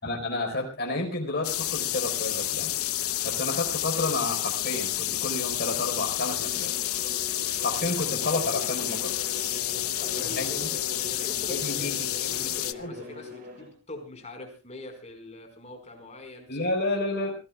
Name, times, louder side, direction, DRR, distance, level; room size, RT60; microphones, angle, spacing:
voice 1, 0.0-6.7 7.6-9.1 10.4-10.7 11.5-12.5 12.8-13.0 16.5-17.4, left 2 dB, 45° left, 1 dB, 4.7 m, -31 dB
sound 1, 1.4-12.7, left 13 dB, 75° left, 0.9 m, -30 dB
Bowed string instrument, 6.3-13.7, left 2 dB, 45° right, 3.9 m, -41 dB
voice 2, 10.0-10.8 11.1-16.8, left 1 dB, 30° left, 4 dB, 5.0 m, -44 dB
26.5 x 18.0 x 2.4 m, 0.32 s
head